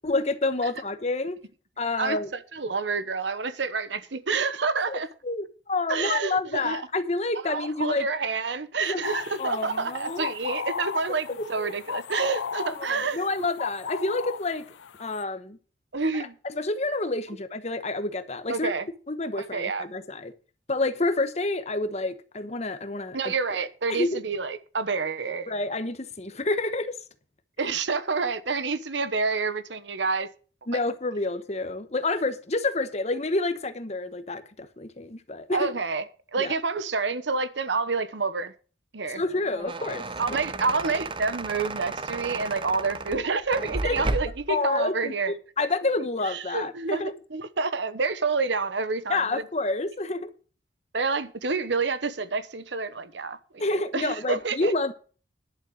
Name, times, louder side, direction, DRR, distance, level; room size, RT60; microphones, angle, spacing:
voice 1, 0.0-1.4 1.8-2.3 4.9-5.0 5.2-8.1 8.8-9.1 9.4-10.3 11.0-11.1 11.6-11.7 12.6-14.7 15.0-15.6 16.4-18.7 19.1-20.3 20.7-23.3 23.9-24.2 25.5-27.0 27.6-27.7 30.7-35.7 36.4-36.5 39.1-40.4 43.8-44.1 44.5-45.1 45.6-47.1 49.1-50.3 53.6-54.9, left 2 dB, 35° left, 1.1 m, -28 dB
voice 2, 2.5-5.1 5.9-6.8 7.4-13.2 15.9-16.3 18.5-18.8 19.4-19.9 23.1-25.5 27.6-30.3 35.5-36.1 36.3-38.5 38.9-39.2 40.2-45.3 46.2-47.0 47.3-49.4 50.9-53.4 53.7-54.7, right 4 dB, 75° right, 1.0 m, -28 dB
sound 1, 9.0-15.2, left 6 dB, 85° left, 0.5 m, -36 dB
sound 2, 39.3-44.5, right 2 dB, 25° right, 0.6 m, -33 dB
11.0 x 6.9 x 6.4 m
head